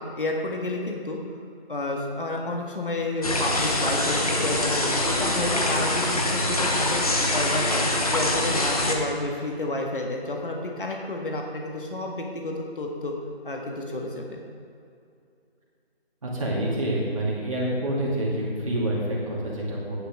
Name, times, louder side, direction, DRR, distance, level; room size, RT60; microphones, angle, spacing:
voice 1, 0.0-1.4 1.7-7.0 7.3-13.1 13.4-14.4, left 2 dB, 55° left, 0 dB, 1.7 m, -30 dB
sound 1, 3.2-8.9, left 1 dB, 35° left, 1.0 m, -24 dB
voice 2, 16.2-20.0, right 1 dB, 30° right, -6 dB, 2.6 m, -27 dB
12.0 x 10.0 x 3.7 m, 2.4 s
figure-of-eight pair, 170°, 32 cm